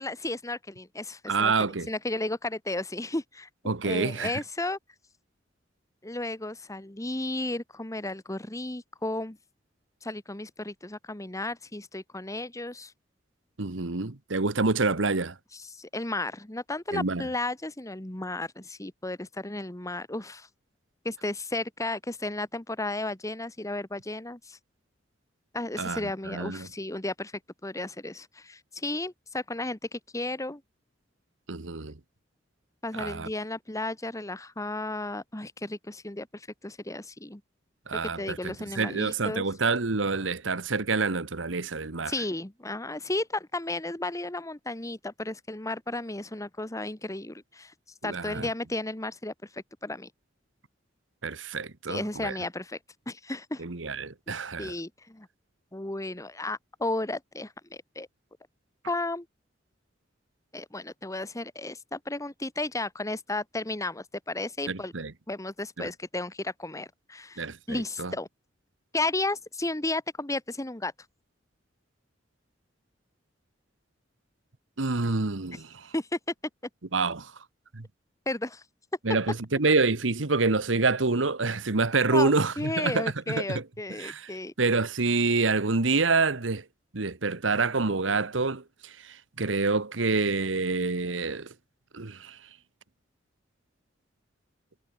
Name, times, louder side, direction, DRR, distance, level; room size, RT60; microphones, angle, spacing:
voice 1, 0.0-3.5 3.8-4.8 6.0-9.4 10.0-12.9 15.5-20.5 21.0-24.6 25.5-27.3 27.6-30.6 32.8-37.4 38.0-39.4 42.1-47.7 48.0-50.1 51.9-52.8 53.1-53.6 54.6-55.3 55.7-58.1 58.9-59.3 60.5-64.9 65.3-68.3 68.9-70.9 75.9-76.3 78.2-78.6 82.1-84.5, left 2 dB, 15° left, 1.6 m, -34 dB
voice 2, 1.3-1.9 3.7-4.3 13.6-15.3 16.9-17.3 25.8-26.7 31.5-31.9 33.0-33.3 37.9-42.1 48.0-48.5 51.2-52.4 53.6-54.7 64.7-65.1 65.8-65.9 67.4-68.1 74.8-75.9 76.9-77.3 77.7-77.9 79.0-83.6 84.0-84.3 84.6-86.6 86.9-91.5 91.9-92.4, right 3 dB, 85° right, 1.4 m, -27 dB
head